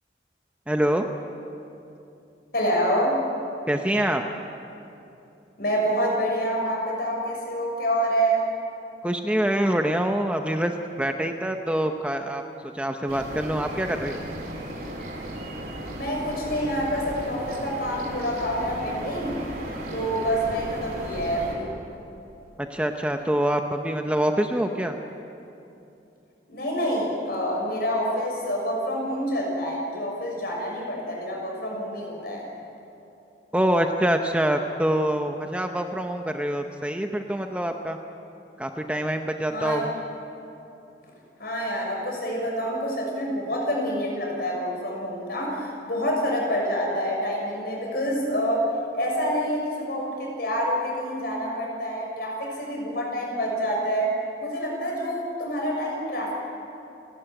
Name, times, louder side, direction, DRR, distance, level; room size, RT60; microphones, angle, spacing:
voice 1, 0.7-1.1 3.7-4.2 9.0-12.4 12.7-14.2 22.6-25.0 33.5-38.0 38.6-39.9, right 1 dB, 5° right, 5 dB, 0.7 m, -25 dB
voice 2, 2.5-3.2 5.6-8.4 15.9-19.4 19.9-21.7 26.5-32.5 39.5-39.9 41.4-48.7 48.9-54.1 54.4-56.3, equal, 55° left, -1 dB, 6.4 m, -27 dB
sound 1, 13.1-21.5, right 1 dB, 55° right, 3.7 m, -35 dB
29.5 x 12.0 x 9.0 m, 2.8 s
head